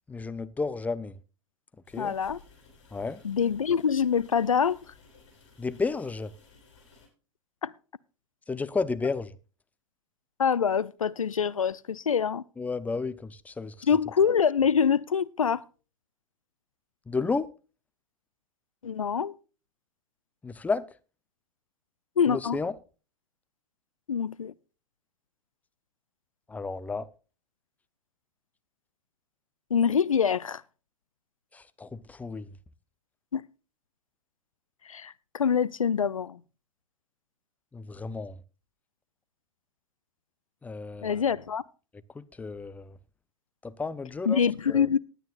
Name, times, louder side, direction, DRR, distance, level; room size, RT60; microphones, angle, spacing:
voice 1, 0.1-1.2 1.9-2.2 2.9-3.2 5.6-6.3 8.5-9.4 12.6-13.9 17.1-17.5 20.4-20.9 22.3-22.8 26.5-27.1 31.5-32.6 37.7-38.4 40.6-41.2 42.1-43.0 43.6-44.4 44.7-44.9, left 4 dB, 10° left, 0.7 m, -32 dB
sound 1, 1.9-7.1, left 4 dB, 60° left, 6.8 m, -57 dB
voice 2, 2.0-2.4 3.2-4.8 7.6-7.7 10.4-12.4 13.9-15.6 18.8-19.3 22.2-22.6 24.1-24.5 29.7-30.6 33.3-33.5 34.8-36.4 41.0-41.6 44.3-45.0, left 7 dB, 80° left, 0.4 m, -25 dB
19.5 x 9.1 x 2.4 m
figure-of-eight pair, 90°, 17 cm